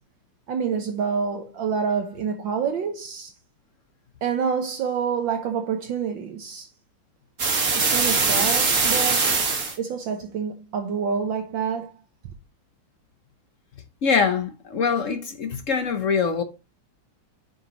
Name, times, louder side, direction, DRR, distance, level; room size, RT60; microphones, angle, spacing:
voice 1, 0.5-3.3 4.2-6.7 7.7-9.3 9.8-11.9, right 6 dB, 70° right, 1.6 m, -27 dB
sound 1, 7.4-9.8, right 4 dB, 45° right, 2.0 m, -21 dB
voice 2, 14.0-16.4, left 5 dB, 60° left, 0.8 m, -23 dB
9.0 x 5.4 x 2.9 m
omnidirectional pair, 2.3 m